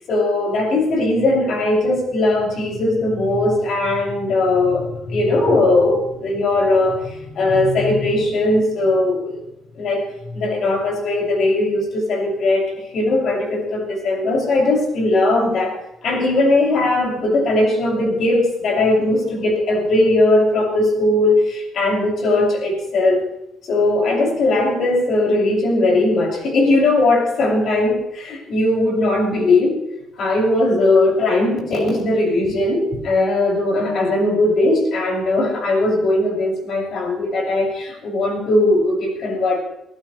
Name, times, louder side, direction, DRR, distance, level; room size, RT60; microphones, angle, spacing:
voice 1, 0.1-9.4 9.7-23.2 23.7-29.8 30.2-39.6, left 2 dB, 65° left, 0 dB, 6.6 m, -19 dB
24.5 x 15.5 x 3.3 m, 0.81 s
cardioid pair, 90°, 0 cm